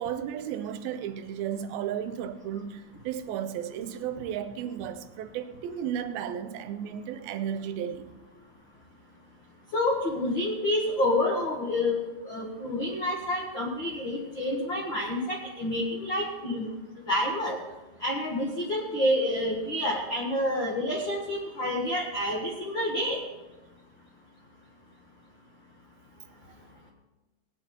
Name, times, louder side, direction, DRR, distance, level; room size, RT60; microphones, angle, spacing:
voice 1, 0.0-8.1 26.5-26.6, right 9 dB, 90° right, 2.5 m, -34 dB
voice 2, 9.7-16.7 17.1-17.6 18.0-23.2, left 1 dB, 65° left, 1.1 m, -28 dB
18.5 x 9.8 x 4.3 m
omnidirectional pair, 4.3 m